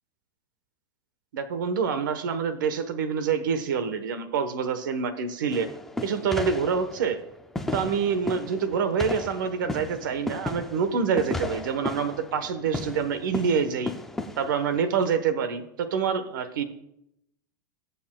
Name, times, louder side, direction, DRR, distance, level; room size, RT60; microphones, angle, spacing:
voice 1, 1.3-5.7 6.0-7.2 7.7-13.9 14.4-16.6, right 6 dB, 80° right, 10 dB, 1.1 m, -26 dB
sound 1, 5.5-15.1, left 2 dB, 5° left, 0.4 m, -35 dB
20.5 x 7.0 x 2.3 m, 0.81 s
supercardioid pair, 175°, 10 cm